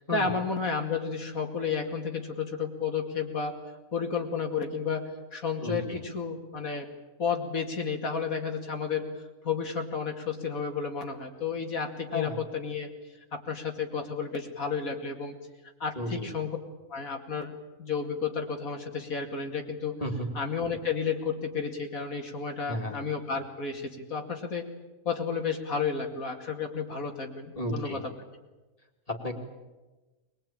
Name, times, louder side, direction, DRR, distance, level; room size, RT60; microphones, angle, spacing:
voice 1, 0.1-3.6 3.9-5.0 5.3-6.9 7.2-9.1 9.4-12.9 13.3-15.3 15.8-16.6 16.9-17.5 17.8-20.0 20.3-24.7 25.1-28.1, left 5 dB, 70° left, 3 dB, 2.8 m, -32 dB
voice 2, 5.6-6.0 12.1-12.4 16.0-16.3 20.0-20.3 22.7-23.0 27.6-28.0 29.1-29.3, left 1 dB, 25° left, 2 dB, 2.9 m, -33 dB
22.0 x 21.5 x 8.9 m, 1.2 s
omnidirectional pair, 1.5 m